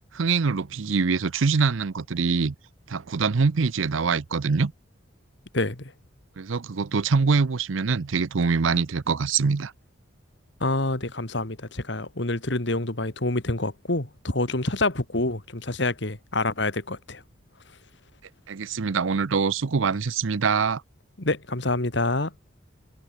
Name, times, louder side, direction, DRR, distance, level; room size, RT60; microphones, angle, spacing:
voice 1, 0.1-2.5 2.9-4.7 6.4-9.7 18.5-20.8, right 5 dB, 75° right, 0.6 m, -24 dB
voice 2, 5.5-5.9 10.6-17.2 21.2-22.3, left 2 dB, 60° left, 2.1 m, -27 dB
head